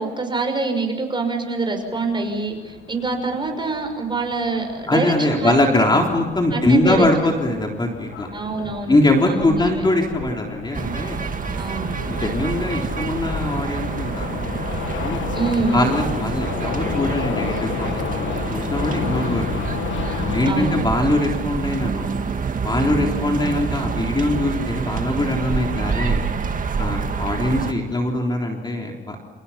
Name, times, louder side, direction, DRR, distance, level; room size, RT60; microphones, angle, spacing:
voice 1, 0.0-5.6 5.9-6.0 6.5-7.1 8.3-9.0 9.3-9.8 11.6-11.9 15.3-15.8 20.4-20.8, right 3 dB, 25° right, 4 dB, 6.0 m, -25 dB
sound 1, 1.8-20.8, left 8 dB, 75° left, 1.8 m, -32 dB
voice 2, 4.9-8.3 8.9-11.2 12.1-14.4 15.0-15.2 15.7-19.5 20.3-22.2 22.6-26.2 26.8-29.2, left 1 dB, 20° left, 1 dB, 3.7 m, -22 dB
sound 2, 10.7-27.7, right 5 dB, 40° right, 2.0 m, -27 dB
29.0 x 27.5 x 5.9 m, 1.3 s
cardioid pair, 90°, 20 cm